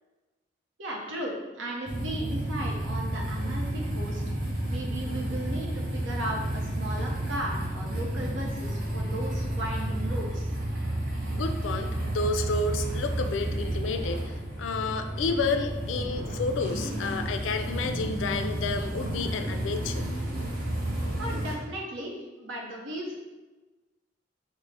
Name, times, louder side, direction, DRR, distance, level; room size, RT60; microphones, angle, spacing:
voice 1, 0.8-4.2 4.7-10.5 21.2-23.2, right 1 dB, 85° right, -1 dB, 0.7 m, -36 dB
sound 1, 1.9-21.5, right 1 dB, 50° right, 0.7 m, -31 dB
voice 2, 11.3-14.2 14.6-20.1, left 3 dB, 85° left, 6 dB, 0.3 m, -30 dB
3.7 x 2.0 x 3.2 m, 1.2 s
head